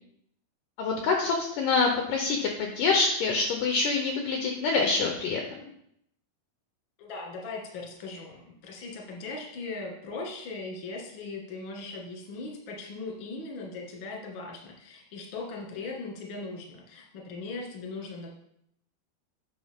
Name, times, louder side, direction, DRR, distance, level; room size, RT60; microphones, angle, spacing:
voice 1, 0.8-5.7, left 4 dB, 85° left, 2 dB, 1.8 m, -26 dB
voice 2, 7.0-18.3, left 3 dB, 55° left, -1 dB, 1.4 m, -39 dB
9.3 x 5.6 x 3.5 m, 0.74 s
omnidirectional pair, 4.9 m